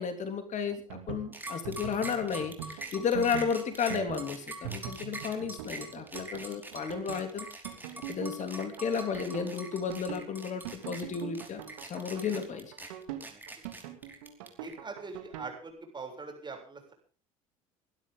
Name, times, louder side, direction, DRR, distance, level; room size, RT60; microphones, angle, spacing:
voice 1, 0.0-7.5 8.1-12.7, left 6 dB, 45° left, 8 dB, 3.0 m, -33 dB
sound 1, 0.7-15.6, right 10 dB, 75° right, 2.9 m, -42 dB
sound 2, 1.3-14.7, right 2 dB, 10° right, 5.1 m, -43 dB
voice 2, 14.6-16.9, right 4 dB, 25° right, 3 dB, 7.3 m, -42 dB
23.0 x 12.0 x 3.9 m, 0.41 s
hypercardioid pair, 65°, 17 cm